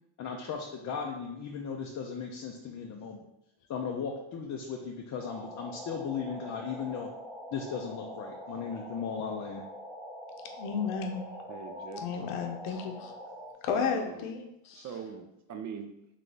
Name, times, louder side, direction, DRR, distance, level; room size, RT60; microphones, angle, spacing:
voice 1, 0.2-3.3 3.7-7.1 7.5-9.6, left 6 dB, 40° left, 1 dB, 0.4 m, -36 dB
sound 1, 5.2-13.5, equal, ahead, 0.7 m, -44 dB
voice 2, 10.5-11.2 12.0-13.1 13.6-14.4 14.6-14.9, left 6 dB, 80° left, 4 dB, 0.7 m, -32 dB
voice 3, 11.5-12.1 13.7-14.4 14.7-15.9, right 6 dB, 40° right, 6 dB, 0.4 m, -42 dB
3.3 x 3.1 x 3.9 m, 0.85 s
cardioid pair, 130°, 49 cm